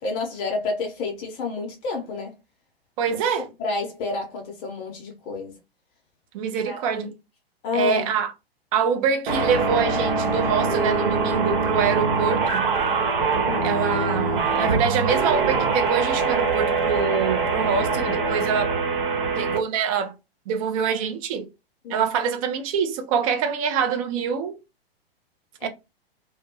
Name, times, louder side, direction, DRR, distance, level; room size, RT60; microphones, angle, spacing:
voice 1, 0.0-2.3 3.1-3.2 3.6-5.6 6.6-7.1 7.6-8.0 13.5-13.8 21.8-22.1 25.6-25.7, left 4 dB, 35° left, 0.7 m, -30 dB
voice 2, 3.0-3.5 6.3-7.1 7.7-8.3 8.7-12.7 13.6-18.7 19.4-20.1 20.5-21.5 21.9-24.6 25.6-25.7, right 6 dB, 35° right, 0.5 m, -25 dB
sound 1, 9.3-19.6, right 4 dB, 55° right, 1.1 m, -23 dB
2.2 x 2.2 x 2.9 m
figure-of-eight pair, 105°, 30 cm